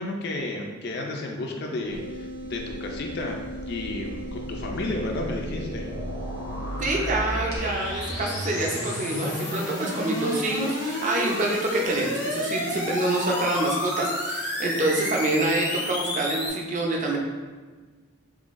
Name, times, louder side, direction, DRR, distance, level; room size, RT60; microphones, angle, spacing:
voice 1, 0.0-3.4 3.7-5.9, left 2 dB, 50° left, 1 dB, 0.4 m, -32 dB
sound 1, 1.9-7.6, right 1 dB, 80° right, 1.0 m, -38 dB
sound 2, 2.7-16.5, left 1 dB, 90° left, 1.1 m, -31 dB
voice 2, 6.8-17.2, right 2 dB, 35° right, -1 dB, 0.5 m, -26 dB
3.7 x 3.3 x 2.5 m, 1.4 s
head